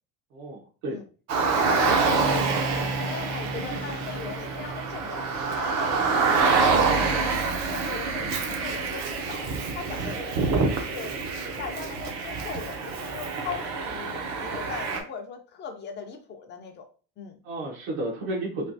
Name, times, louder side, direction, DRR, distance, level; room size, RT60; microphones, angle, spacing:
voice 1, 0.3-1.0 17.4-18.7, right 1 dB, 75° right, -2 dB, 1.1 m, -32 dB
Car, 1.3-15.0, right 4 dB, 40° right, 0.5 m, -26 dB
voice 2, 1.4-2.6 3.0-5.3 5.6-9.5 9.7-11.1 11.6-16.9 17.2-17.4, left 6 dB, 25° left, 5 dB, 0.4 m, -39 dB
3.3 x 2.3 x 2.6 m, 0.37 s
cardioid pair, 155°, 41 cm